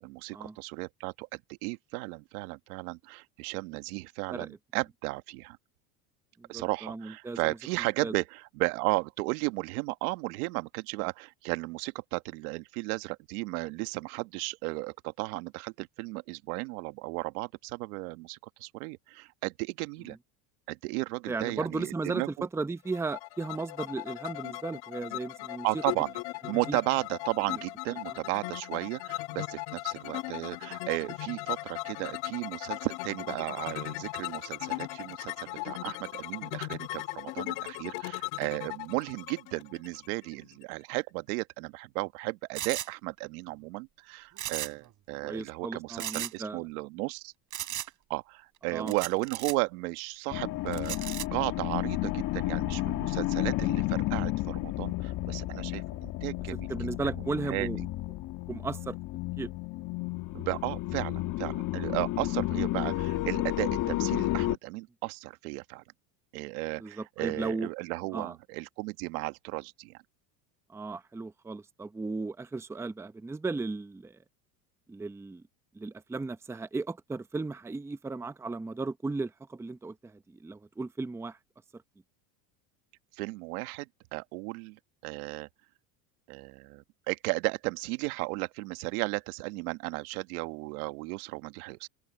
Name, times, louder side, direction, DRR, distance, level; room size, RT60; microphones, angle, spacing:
voice 1, 0.0-5.6 6.5-20.2 20.7-22.5 25.6-26.1 26.5-47.3 48.1-56.7 57.4-57.7 60.3-65.8 66.3-70.0 83.1-85.5 86.3-91.9, right 24 dB, 75° right, 1.5 m, -34 dB
voice 2, 6.4-7.6 8.0-8.2 21.3-25.7 26.7-26.8 45.2-46.6 48.7-48.9 56.7-57.8 58.5-59.0 59.4-59.5 61.9-62.0 66.8-67.7 68.1-68.3 70.7-74.2 74.9-75.4 75.7-81.4, right 3 dB, 5° right, 0.7 m, -35 dB
sound 1, 22.9-40.6, left 21 dB, 60° left, 1.9 m, -38 dB
sound 2, 42.5-42.9 44.3-44.9 45.1-45.2 46.0-46.3 47.5-47.9 48.9-49.5 50.7-51.2, right 12 dB, 40° right, 5.0 m, -36 dB
sound 3, 50.3-64.6, left 16 dB, 45° left, 1.4 m, -32 dB
open air
supercardioid pair, 115°, 44 cm